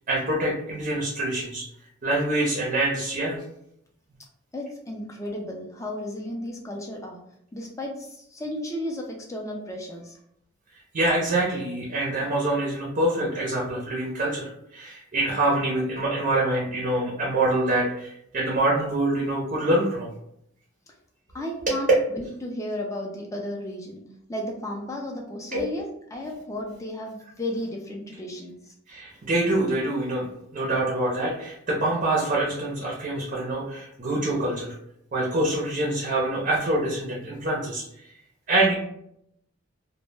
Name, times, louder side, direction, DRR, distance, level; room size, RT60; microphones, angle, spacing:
voice 1, 0.1-1.7 2.0-3.4 10.9-20.1 21.7-21.8 25.5-25.7 28.9-30.3 30.5-34.7 35.1-38.2 38.5-38.7, right 1 dB, 40° right, -3 dB, 0.5 m, -25 dB
voice 2, 4.5-7.2 7.5-10.2 21.3-24.0 24.3-28.7, left 1 dB, 15° left, 0 dB, 0.3 m, -34 dB
2.1 x 2.0 x 3.2 m, 0.75 s
head